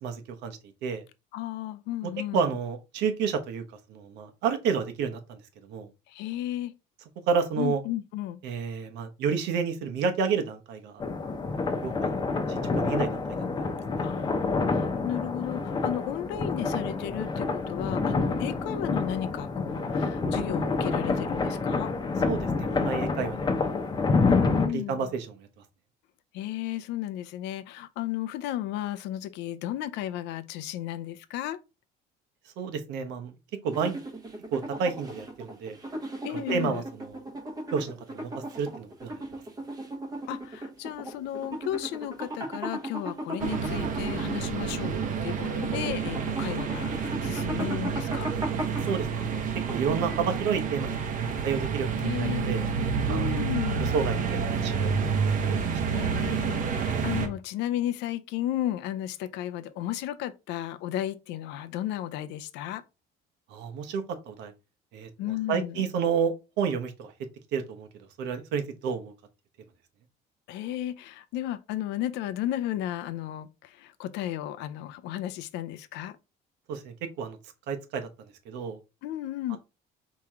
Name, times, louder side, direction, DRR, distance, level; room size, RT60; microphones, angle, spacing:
voice 1, 0.0-1.0 2.3-3.6 3.9-5.4 5.7-5.9 7.3-7.8 8.4-11.0 11.8-13.4 22.2-23.5 24.7-25.5 32.6-33.3 33.6-34.0 34.5-35.8 36.3-37.1 37.7-39.2 48.9-51.0 51.4-52.7 53.1-53.3 53.9-55.0 55.5-55.6 63.5-64.5 64.9-65.1 65.5-67.1 67.5-67.9 68.2-69.1 76.7-77.4 77.7-78.1 78.5-78.8 79.5-79.6, right 6 dB, 75° right, 1.0 m, -30 dB
voice 2, 1.3-2.4 6.1-6.7 7.6-8.4 14.0-21.9 24.3-25.1 26.3-31.6 36.2-36.8 40.3-48.3 52.0-52.5 53.1-53.9 55.9-62.8 65.2-65.9 70.5-76.2 79.0-79.6, left 12 dB, 80° left, 0.6 m, -34 dB
sound 1, 11.0-24.7, left 4 dB, 25° left, 0.8 m, -28 dB
sound 2, 33.7-50.5, right 1 dB, 20° right, 1.0 m, -37 dB
sound 3, 43.4-57.3, right 6 dB, 50° right, 0.9 m, -29 dB
4.7 x 3.1 x 3.6 m
cardioid pair, 145°, 18 cm